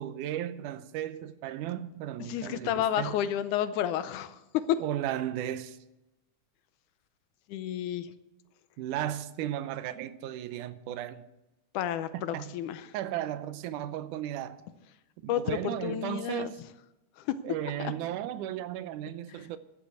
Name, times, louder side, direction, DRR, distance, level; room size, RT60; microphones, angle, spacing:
voice 1, 0.0-3.2 4.8-5.8 8.8-11.2 12.3-12.6 12.9-14.6 15.2-16.6 17.4-19.6, right 12 dB, 85° right, 2.2 m, -35 dB
voice 2, 2.3-4.4 4.7-4.8 7.5-8.1 11.7-12.9 15.3-16.5 17.2-17.3 17.8-17.9 19.4-19.5, left 10 dB, 85° left, 2.2 m, -31 dB
11.5 x 7.8 x 8.1 m
omnidirectional pair, 3.5 m